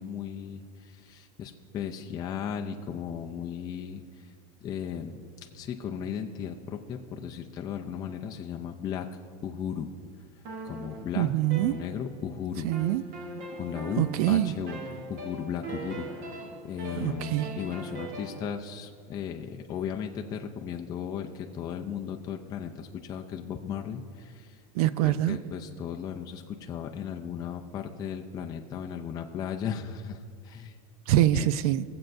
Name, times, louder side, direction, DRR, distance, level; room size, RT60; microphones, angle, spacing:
voice 1, 0.0-4.0 4.6-5.2 5.5-9.1 9.4-9.9 10.6-11.3 11.6-12.7 13.6-14.8 15.1-24.6 25.0-30.2 30.4-30.7 31.3-31.5, left 8 dB, 20° left, 0.4 m, -36 dB
sound 1, 10.4-12.3 12.7-18.5, right 2 dB, 45° right, 1.1 m, -40 dB
voice 2, 11.2-11.8 12.6-13.0 14.0-14.5 17.0-17.5 24.8-25.4 31.1-31.8, right 14 dB, 70° right, 0.4 m, -24 dB
20.5 x 7.6 x 2.6 m
supercardioid pair, 160°, 20 cm